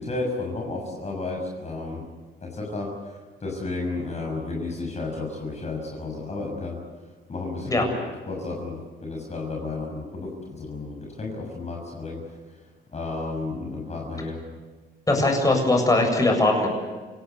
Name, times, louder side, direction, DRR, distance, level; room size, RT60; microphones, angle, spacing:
voice 1, 0.0-2.0 2.4-6.8 7.3-7.8 8.3-12.2 12.9-14.4, left 3 dB, 35° left, 0 dB, 6.6 m, -32 dB
voice 2, 15.1-16.7, left 2 dB, 15° left, 2 dB, 7.7 m, -20 dB
29.0 x 18.5 x 8.2 m, 1.4 s
cardioid pair, 90°, 20 cm